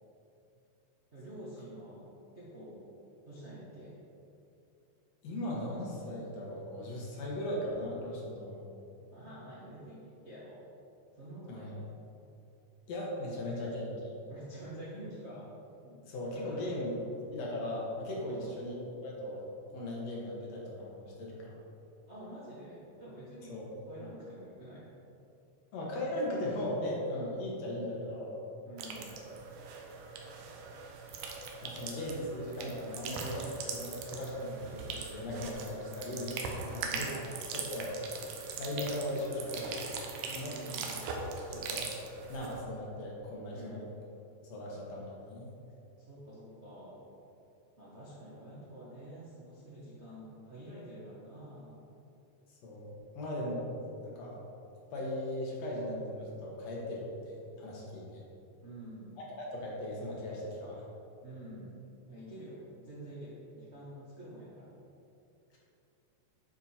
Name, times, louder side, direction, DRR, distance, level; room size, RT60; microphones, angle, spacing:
voice 1, 1.1-2.1 2.3-2.9 3.2-3.9 9.1-10.6 11.2-11.8 14.3-15.5 15.8-17.0 18.2-18.5 22.1-23.6 23.9-24.8 28.6-29.2 36.6-37.3 40.2-41.1 43.5-43.8 46.1-47.1 47.8-51.9 58.6-59.2 61.2-61.8 62.1-64.7, right 1 dB, 65° right, -8 dB, 0.6 m, -48 dB
voice 2, 5.2-8.6 11.5-11.7 12.9-14.1 16.1-16.9 17.3-18.7 19.0-19.5 19.7-21.6 23.5-23.6 25.7-28.3 31.6-36.4 36.7-37.2 37.5-37.9 38.6-39.9 40.3-40.5 41.5-41.9 42.3-43.8 44.4-45.5 52.6-53.7 54.0-54.4 54.9-58.2 59.2-60.8, left 1 dB, 65° left, -3 dB, 2.3 m, -38 dB
sound 1, 28.8-42.6, right 4 dB, 85° right, 2.3 m, -41 dB
9.0 x 4.8 x 4.3 m, 2.8 s
omnidirectional pair, 3.5 m